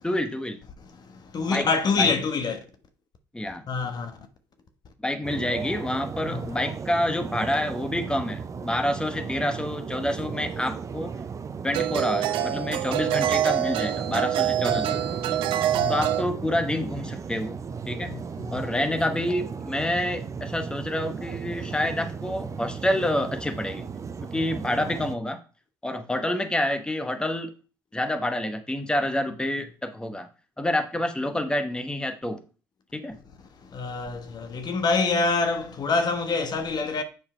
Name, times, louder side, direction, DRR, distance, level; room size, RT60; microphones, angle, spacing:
voice 1, 0.0-0.6 1.5-1.7 2.0-2.1 3.3-3.6 5.0-11.1 11.6-15.0 15.9-17.6 17.9-18.1 18.5-23.9 24.2-25.4 25.8-27.5 27.9-30.3 30.6-32.4 32.9-33.2, left 1 dB, 10° left, 1.1 m, -28 dB
voice 2, 0.8-2.6 3.7-4.2 6.2-6.6 13.1-13.2 15.7-16.0 18.0-18.6 33.6-37.0, left 4 dB, 45° left, 1.2 m, -26 dB
sound 1, 5.2-25.2, right 6 dB, 35° right, 0.7 m, -35 dB
sound 2, 10.3-10.5 11.7-16.2, right 11 dB, 70° right, 0.6 m, -26 dB
7.9 x 4.5 x 4.3 m
hypercardioid pair, 65°, 9 cm